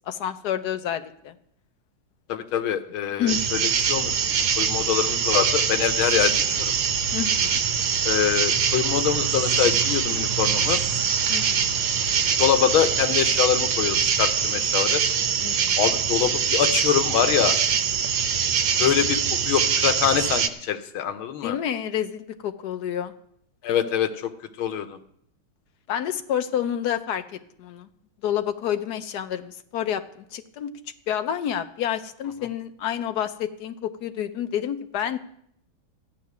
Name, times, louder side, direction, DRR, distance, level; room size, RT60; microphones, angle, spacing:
voice 1, 0.1-1.3 3.2-3.4 7.1-7.6 11.3-11.7 15.4-15.8 21.4-23.1 25.9-27.2 27.6-27.9 28.2-30.0 30.3-30.7 31.1-35.2, left 9 dB, 65° left, 9 dB, 1.0 m, -29 dB
voice 2, 2.3-6.7 8.0-10.8 12.4-15.0 15.8-17.6 18.8-19.2 19.4-21.6 23.6-24.3 24.6-25.0, left 9 dB, 90° left, 9 dB, 1.7 m, -24 dB
sound 1, 3.3-20.5, right 7 dB, 90° right, 1.7 m, -23 dB
13.5 x 5.9 x 9.3 m, 0.70 s
omnidirectional pair, 2.2 m